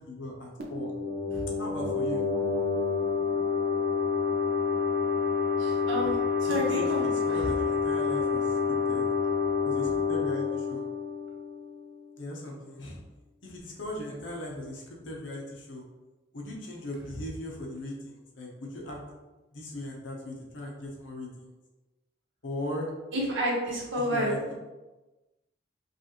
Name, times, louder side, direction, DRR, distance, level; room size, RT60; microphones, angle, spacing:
voice 1, 0.1-0.9 1.6-2.2 6.5-9.0 9.6-10.8 12.2-13.0 13.4-15.8 16.3-19.0 19.5-21.5 22.4-22.9 24.0-24.5, left 1 dB, 65° left, -1 dB, 0.8 m, -38 dB
sound 1, 0.6-12.0, left 5 dB, 50° right, 0.7 m, -28 dB
voice 2, 5.6-7.4 23.1-24.5, equal, 65° right, -3 dB, 1.2 m, -30 dB
5.1 x 2.5 x 3.0 m, 1.1 s
head